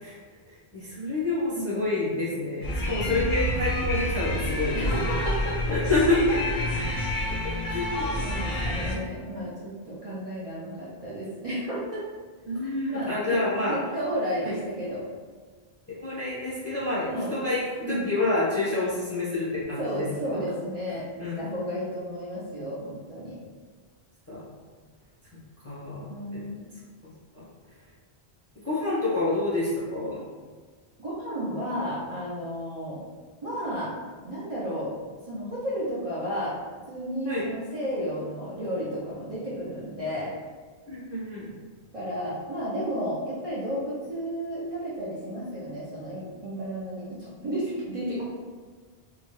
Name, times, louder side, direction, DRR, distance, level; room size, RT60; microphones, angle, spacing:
voice 1, 0.5-4.9 5.7-6.2 7.4-8.4 8.9-9.4 12.4-13.8 14.4-14.5 15.9-20.0 20.3-20.4 21.2-21.4 24.3-24.4 25.6-26.1 26.3-26.5 27.3-27.4 28.6-30.2 37.2-37.5 40.9-41.5, left 2 dB, 15° left, -8 dB, 0.5 m, -28 dB
voice 2, 1.5-1.8 3.0-3.3 4.7-5.6 8.2-12.0 12.6-13.4 13.7-15.0 17.1-17.3 17.8-18.1 19.8-21.0 21.4-23.4 26.1-26.7 31.0-33.0 33.4-33.9 34.2-34.9 35.3-36.5 36.9-40.3 41.9-48.2, equal, 40° right, -9 dB, 0.5 m, -32 dB
sound 1, 2.6-8.9, left 1 dB, 55° left, 0.7 m, -28 dB
2.8 x 2.2 x 3.0 m, 1.5 s
omnidirectional pair, 1.1 m